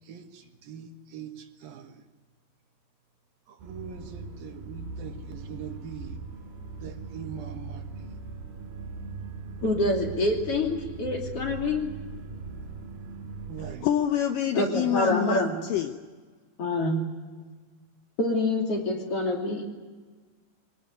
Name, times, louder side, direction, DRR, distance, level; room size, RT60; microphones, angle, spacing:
voice 1, 0.1-2.0 3.5-6.2 6.8-8.2 13.5-13.9, right 7 dB, 70° right, 5 dB, 3.1 m, -42 dB
sound 1, 3.6-13.7, right 4 dB, 85° right, 5.4 m, -40 dB
voice 2, 9.6-11.9 14.5-15.6 16.6-17.0 18.2-19.6, left 2 dB, 40° left, 1 dB, 3.5 m, -26 dB
voice 3, 13.6-15.9, left 10 dB, 75° left, 7 dB, 2.1 m, -27 dB
24.0 x 19.0 x 9.5 m, 1.4 s
omnidirectional pair, 4.5 m